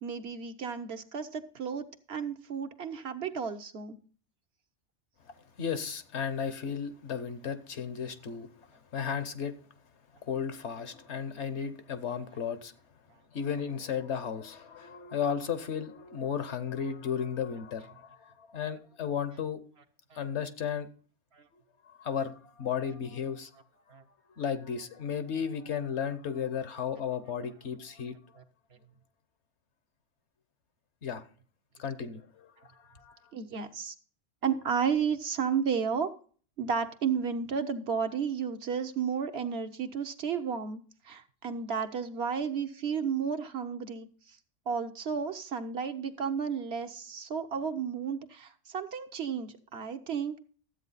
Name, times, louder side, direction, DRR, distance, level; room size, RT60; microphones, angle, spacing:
voice 1, 0.0-4.0 20.1-20.3 21.4-21.5 23.9-24.0 28.4-28.5 33.3-33.9 34.4-36.1 36.6-44.4 44.7-50.4, right 6 dB, 60° right, 1.0 m, -33 dB
voice 2, 5.6-8.5 8.9-9.5 10.3-12.7 13.3-19.6 20.1-20.9 21.9-23.5 24.4-28.2 31.0-31.2 31.8-33.2, left 7 dB, 65° left, 1.2 m, -34 dB
12.5 x 8.3 x 4.1 m
omnidirectional pair, 1.3 m